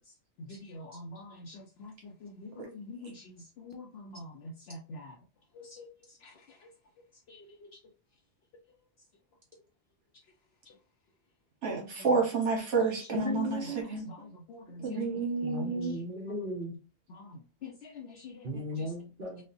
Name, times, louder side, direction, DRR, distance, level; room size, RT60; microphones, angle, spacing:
voice 1, 0.5-1.9 2.2-3.1 3.6-4.3 4.7-5.1 5.6-5.9 14.1-14.2 14.5-14.6 17.6-17.7 18.0-18.3, left 2 dB, 65° left, 0.8 m, -45 dB
voice 2, 11.6-14.1 14.8-16.0, right 4 dB, 80° right, 1.3 m, -30 dB
voice 3, 13.1-13.8 14.8-16.7 18.4-19.4, equal, 50° right, 1.0 m, -36 dB
5.0 x 2.1 x 2.6 m
omnidirectional pair, 1.2 m